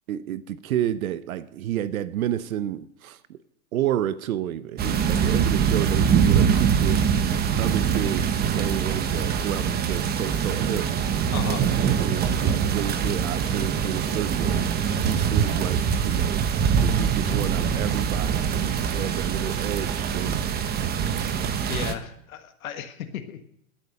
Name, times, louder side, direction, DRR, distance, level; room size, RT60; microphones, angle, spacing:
voice 1, 0.1-3.4 3.7-7.1 7.6-10.9 12.0-14.7 15.0-16.5 16.8-20.4, right 11 dB, 80° right, 15 dB, 0.9 m, -30 dB
sound 1, 4.8-21.9, right 7 dB, 25° right, 1.1 m, -23 dB
voice 2, 11.3-11.7 21.7-23.4, left 9 dB, 80° left, 6 dB, 1.6 m, -34 dB
16.0 x 8.7 x 6.5 m, 0.73 s
hypercardioid pair, 130°, 42 cm